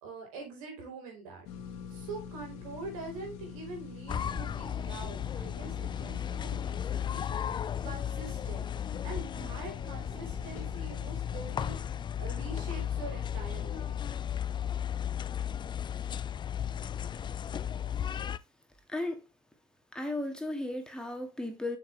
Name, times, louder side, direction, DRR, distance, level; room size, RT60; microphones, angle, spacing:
voice 1, 0.0-1.5 1.9-8.7 9.0-14.0, right 3 dB, 90° right, 4.4 m, -44 dB
sound 1, 1.4-11.6, left 6 dB, 85° left, 1.9 m, -46 dB
sound 2, 4.1-18.4, left 9 dB, 25° left, 0.4 m, -35 dB
voice 2, 18.9-19.2 19.9-21.8, left 2 dB, 5° left, 2.0 m, -35 dB
7.3 x 6.8 x 3.3 m
supercardioid pair, 100°, 17 cm